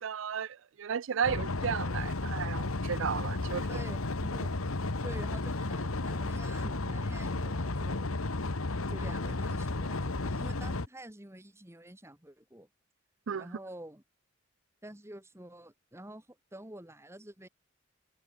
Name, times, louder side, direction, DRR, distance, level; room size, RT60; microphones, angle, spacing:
voice 1, 0.0-3.7 13.3-13.5, right 7 dB, 65° right, 0.4 m, -34 dB
sound 1, 1.2-10.9, left 2 dB, 90° left, 1.5 m, -33 dB
voice 2, 3.7-4.5 5.0-8.2 8.9-12.7 13.4-14.0 14.8-16.3 16.5-17.5, right 1 dB, 15° right, 2.1 m, -48 dB
head